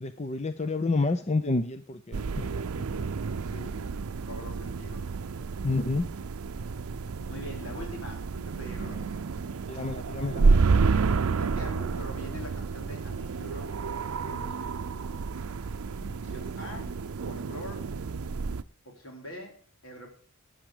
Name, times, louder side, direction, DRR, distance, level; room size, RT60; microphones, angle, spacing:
voice 1, 0.0-2.7 5.6-6.1 8.9-9.0 9.7-10.5 16.0-16.1, left 3 dB, 30° left, 10 dB, 0.6 m, -29 dB
sound 1, 2.1-18.6, right 4 dB, 85° right, 0.5 m, -30 dB
voice 2, 2.7-3.2 3.5-3.8 4.2-5.1 7.3-9.2 10.9-13.9 14.2-14.8 16.2-17.9 18.8-20.1, equal, 70° left, 1 dB, 4.0 m, -44 dB
13.5 x 10.0 x 5.0 m, 0.41 s
head